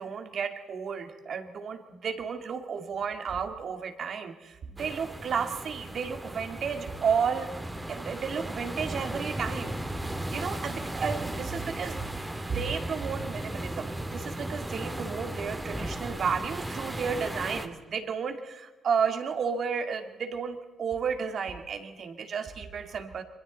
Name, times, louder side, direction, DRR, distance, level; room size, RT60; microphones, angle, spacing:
voice 1, 0.0-7.5 7.9-9.7 10.3-12.0 12.4-23.2, right 6 dB, 55° right, 6 dB, 2.3 m, -32 dB
sound 1, 4.8-17.7, right 1 dB, 15° right, 2.2 m, -36 dB
27.5 x 23.0 x 4.1 m, 1.2 s
cardioid pair, 90°, 0 cm